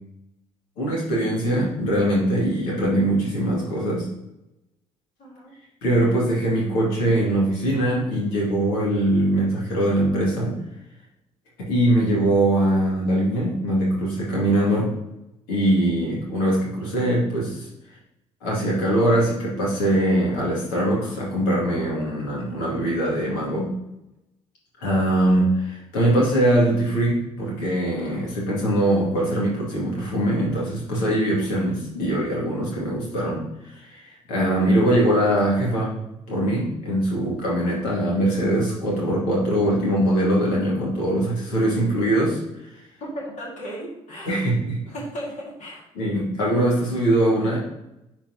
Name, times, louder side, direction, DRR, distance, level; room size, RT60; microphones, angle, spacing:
voice 1, 0.8-4.1 5.8-10.6 11.6-14.9 15.5-17.7 18.4-23.7 24.8-33.4 33.7-34.0 34.3-35.9 36.3-42.4 44.3-44.8 45.9-47.6, right 1 dB, 75° left, -4 dB, 2.5 m, -22 dB
voice 2, 5.2-5.5 43.0-44.4 44.9-45.9, equal, 50° left, -3 dB, 2.1 m, -35 dB
9.8 x 4.5 x 2.9 m, 0.89 s
figure-of-eight pair, 50°, 16 cm